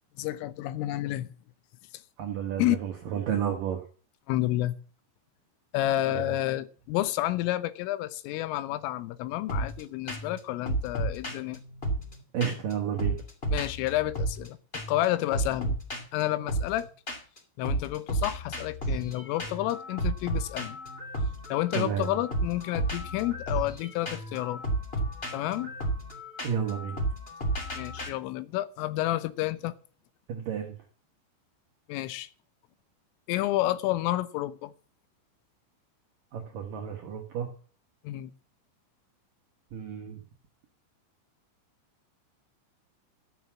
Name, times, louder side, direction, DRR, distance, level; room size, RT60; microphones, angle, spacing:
voice 1, 0.2-1.3 2.6-2.8 4.3-4.8 5.7-11.6 13.5-15.8 16.1-16.9 17.6-20.8 21.5-24.6 25.3-25.7 27.8-29.7 31.9-32.3 33.3-34.7 38.1-38.3, left 15 dB, 85° left, 3.5 m, -30 dB
voice 2, 2.2-3.8 6.1-6.2 12.3-13.2 21.7-22.1 26.4-27.0 30.3-30.7 36.3-37.5 39.7-40.2, right 8 dB, 75° right, 2.0 m, -31 dB
sound 1, 9.5-9.8 10.1-10.4 10.6-12.7 13.0-14.5 14.7-15.0 15.3-17.4 17.6-28.1, right 1 dB, 20° left, 1.7 m, -32 dB
13.5 x 7.7 x 7.1 m
omnidirectional pair, 5.7 m